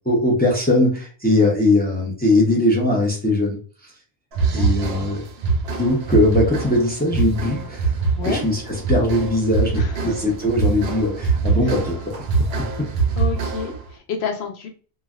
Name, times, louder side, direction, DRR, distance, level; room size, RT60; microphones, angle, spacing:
voice 1, 0.0-3.6 3.8-3.9 4.5-5.2 5.7-7.9 8.3-8.6 8.9-12.1, left 1 dB, 10° left, -2 dB, 0.6 m, -20 dB
sound 1, 4.3-13.9, right 4 dB, 75° right, 0.8 m, -24 dB
voice 2, 4.5-5.1 5.7-5.8 8.2-8.4 9.8-10.1 11.6-11.7 13.2-14.7, left 6 dB, 85° left, 3 dB, 1.0 m, -30 dB
3.1 x 2.4 x 2.3 m, 0.39 s
omnidirectional pair, 1.1 m